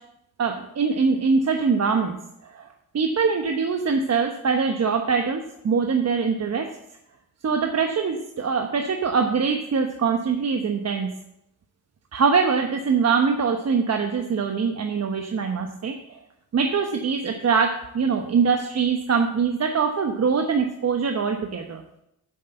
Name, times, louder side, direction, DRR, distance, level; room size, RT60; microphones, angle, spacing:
voice 1, 0.4-2.7 2.9-6.7 7.4-11.1 12.1-16.0 16.5-21.8, right 5 dB, 45° right, 4 dB, 1.1 m, -23 dB
7.8 x 6.5 x 7.9 m, 0.83 s
cardioid pair, 70°, 35 cm